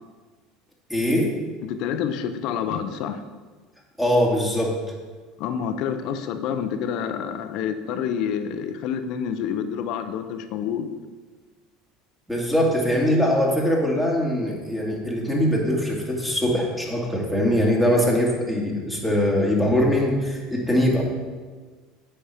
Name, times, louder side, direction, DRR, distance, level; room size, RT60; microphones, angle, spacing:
voice 1, 0.9-1.3 4.0-4.7 12.3-21.0, equal, 5° right, -2 dB, 2.3 m, -22 dB
voice 2, 1.6-3.2 5.4-10.9, left 8 dB, 65° left, 9 dB, 0.7 m, -28 dB
8.1 x 5.7 x 5.0 m, 1.4 s
supercardioid pair, 100°, 0 cm